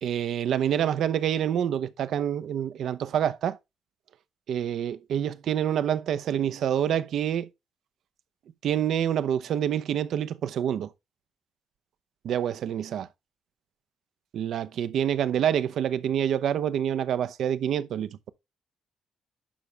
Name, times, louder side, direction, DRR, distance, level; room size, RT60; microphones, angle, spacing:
voice 1, 0.0-3.6 4.5-7.5 8.6-10.9 12.2-13.1 14.3-18.3, right 9 dB, 70° right, 0.7 m, -27 dB
11.5 x 5.1 x 3.3 m
cardioid pair, 90°, 0 cm